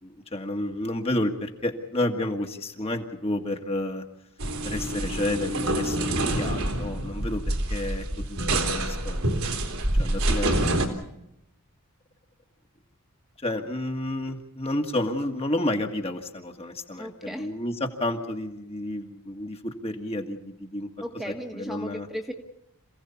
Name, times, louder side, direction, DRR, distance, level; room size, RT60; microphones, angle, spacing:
voice 1, 0.0-4.1 4.7-9.5 10.0-11.0 13.4-20.9 21.2-22.1, left 1 dB, 25° left, 4 dB, 1.8 m, -31 dB
sound 1, 4.4-10.9, right 1 dB, 70° right, 3.2 m, -26 dB
voice 2, 17.0-17.5 21.0-22.3, equal, ahead, 2 dB, 1.5 m, -36 dB
27.5 x 16.5 x 7.1 m, 0.83 s
head